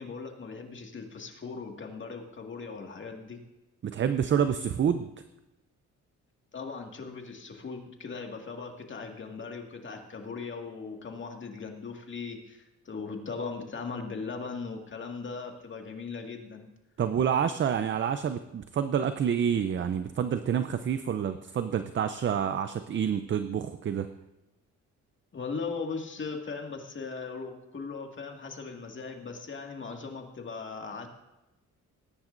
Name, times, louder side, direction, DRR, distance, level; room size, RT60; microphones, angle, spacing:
voice 1, 0.0-3.4 6.5-16.7 25.3-31.1, left 4 dB, 40° left, 2 dB, 2.0 m, -39 dB
voice 2, 3.8-5.1 17.0-24.1, right 8 dB, 40° right, 10 dB, 0.6 m, -28 dB
19.5 x 10.5 x 2.6 m, 0.99 s
cardioid pair, 90°, 30 cm